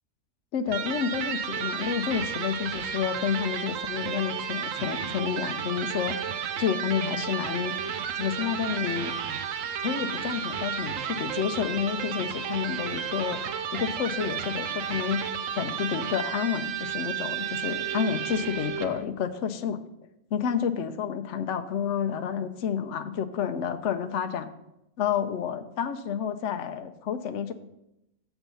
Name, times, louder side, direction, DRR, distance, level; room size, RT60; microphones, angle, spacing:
voice 1, 0.5-6.2 6.6-7.7 8.2-9.1 9.8-13.4 13.7-15.2 15.6-19.8 20.3-24.5 25.0-27.5, left 8 dB, 65° left, 9 dB, 0.9 m, -29 dB
Electric guitar, 0.7-19.0, right 8 dB, 70° right, 1.0 m, -32 dB
7.0 x 6.8 x 5.6 m, 0.86 s
omnidirectional pair, 1.4 m